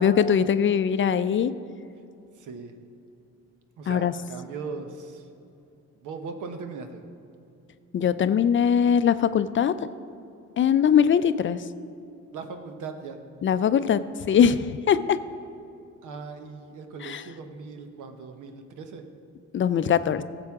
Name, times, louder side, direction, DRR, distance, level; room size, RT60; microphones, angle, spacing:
voice 1, 0.0-1.5 3.9-4.1 7.9-9.9 10.6-11.6 13.4-15.2 17.0-17.2 19.5-20.2, left 8 dB, 40° left, 13 dB, 0.4 m, -21 dB
voice 2, 2.3-2.8 3.8-5.3 5.9-7.0 12.3-13.2 16.0-19.0, right 4 dB, 80° right, 6 dB, 1.0 m, -39 dB
15.0 x 7.7 x 3.6 m, 2.7 s
cardioid pair, 90°, 30 cm